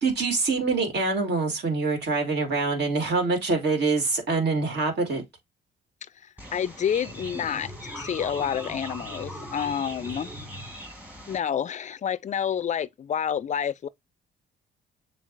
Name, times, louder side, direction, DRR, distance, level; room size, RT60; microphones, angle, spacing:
voice 1, 0.0-5.2, right 3 dB, 60° right, 2.0 m, -25 dB
sound 1, 6.4-11.4, equal, 10° right, 1.4 m, -39 dB
voice 2, 6.5-10.3 11.3-13.9, left 8 dB, 35° left, 0.4 m, -29 dB
7.2 x 2.4 x 2.4 m
cardioid pair, 90°, 20 cm